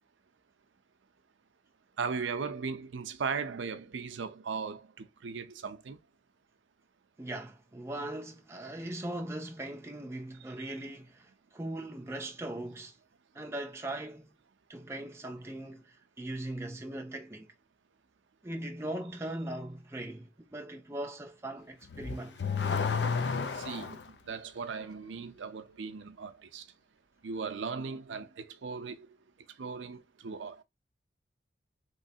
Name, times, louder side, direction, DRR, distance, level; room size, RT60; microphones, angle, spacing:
voice 1, 2.0-6.0 23.5-24.0 24.3-26.7 27.2-29.1 29.6-30.6, right 5 dB, 85° right, 0.5 m, -37 dB
voice 2, 7.2-13.0 13.3-14.3 14.7-17.5 18.4-22.4, right 1 dB, 15° right, 0.4 m, -40 dB
Car / Accelerating revving vroom, 21.8-24.1, left 5 dB, 70° left, 0.5 m, -31 dB
3.2 x 3.0 x 2.7 m
head